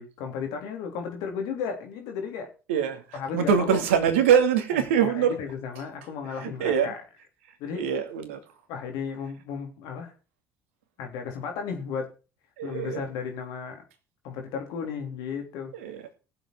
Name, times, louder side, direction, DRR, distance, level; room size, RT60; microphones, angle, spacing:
voice 1, 0.0-2.5 3.1-3.8 4.7-7.0 7.6-7.9 8.7-10.1 11.0-12.1 12.6-13.8 14.2-15.7, left 6 dB, 65° left, 3.6 m, -34 dB
voice 2, 2.7-5.4 6.4-6.9 7.7-8.4 12.6-13.1 15.7-16.0, right 8 dB, 75° right, 2.4 m, -24 dB
18.0 x 7.9 x 4.7 m
hypercardioid pair, 55°, 7 cm